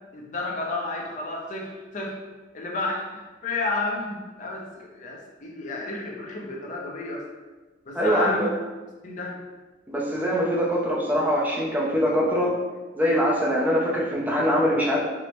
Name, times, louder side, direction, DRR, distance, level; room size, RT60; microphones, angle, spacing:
voice 1, 0.1-2.2 2.5-7.3 7.9-8.5 9.0-9.4, left 2 dB, 40° left, -1 dB, 0.5 m, -31 dB
voice 2, 7.9-8.4 9.9-12.6 13.0-15.0, equal, 10° right, -4 dB, 0.4 m, -23 dB
4.7 x 2.0 x 2.9 m, 1.3 s
head